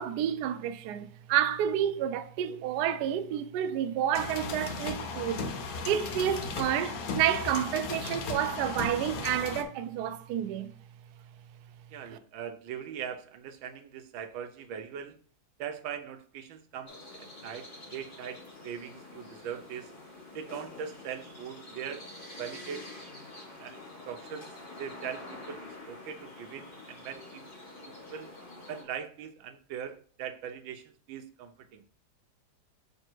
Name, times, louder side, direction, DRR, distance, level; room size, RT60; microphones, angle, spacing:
voice 1, 0.0-5.4 5.8-10.7, right 10 dB, 70° right, 1.0 m, -30 dB
sound 1, 4.1-9.6, left 4 dB, 60° left, 1.1 m, -36 dB
voice 2, 11.9-15.2 15.6-19.9 20.3-22.1 22.4-22.9 23.6-23.8 24.1-24.5 24.8-27.4 27.8-28.3 28.7-31.8, right 8 dB, 90° right, 1.5 m, -41 dB
sound 2, 16.9-28.8, left 2 dB, 30° left, 1.5 m, -47 dB
6.7 x 3.3 x 4.5 m
omnidirectional pair, 2.1 m